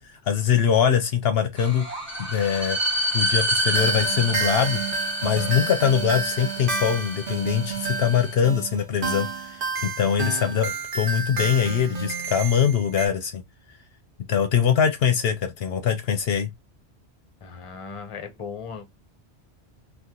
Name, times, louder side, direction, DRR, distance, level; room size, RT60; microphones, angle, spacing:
voice 1, 0.0-1.9 2.3-2.8 3.1-4.8 5.2-13.4 14.3-16.5, left 8 dB, 70° left, 0.7 m, -23 dB
sound 1, 1.6-8.3, equal, 10° right, 1.1 m, -28 dB
sound 2, 3.7-13.1, right 4 dB, 55° right, 0.9 m, -30 dB
voice 2, 17.4-18.8, left 5 dB, 35° left, 0.6 m, -37 dB
2.9 x 2.3 x 3.6 m
omnidirectional pair, 1.2 m